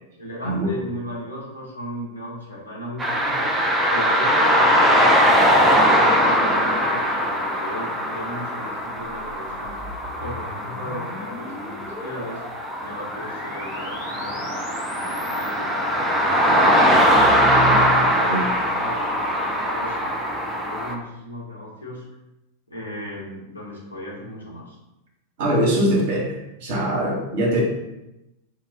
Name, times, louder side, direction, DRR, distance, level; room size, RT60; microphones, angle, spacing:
voice 1, 0.2-3.5 3.9-9.8 10.2-12.4 12.8-16.8 17.1-20.1 20.4-22.0 22.7-24.8, equal, 80° left, -5 dB, 0.8 m, -36 dB
sound 1, 3.0-20.9, equal, 10° right, 0.4 m, -21 dB
sound 2, 8.8-15.6, left 1 dB, 30° left, 0.8 m, -40 dB
voice 2, 18.2-18.5 25.4-27.6, right 1 dB, 50° right, -3 dB, 0.8 m, -22 dB
2.3 x 2.0 x 3.4 m, 0.94 s
figure-of-eight pair, 90°, 0 cm